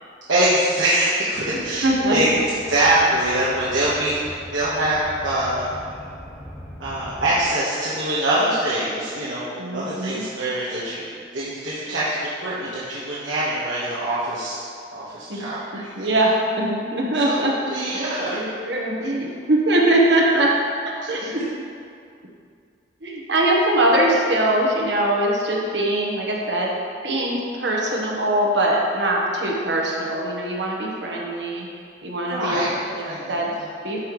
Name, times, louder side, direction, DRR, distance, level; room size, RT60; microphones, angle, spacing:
voice 1, 0.3-2.3 2.7-4.2 4.5-5.7 6.8-11.0 11.3-14.6 14.9-16.1 17.2-18.4 21.2-21.5 32.3-32.7 33.0-33.7, right 1 dB, 85° right, -10 dB, 1.3 m, -24 dB
sound 1, 1.3-7.4, equal, 5° left, 0.7 m, -41 dB
voice 2, 1.5-2.3 9.6-10.2 15.3-15.4 16.0-16.3 16.6-17.5 17.9-20.5 21.1-21.5 23.0-26.7 27.0-31.7 32.0-33.0 33.3-33.6 33.8-34.0, right 1 dB, 65° right, -2 dB, 1.2 m, -22 dB
12.0 x 5.6 x 3.2 m, 2.3 s
head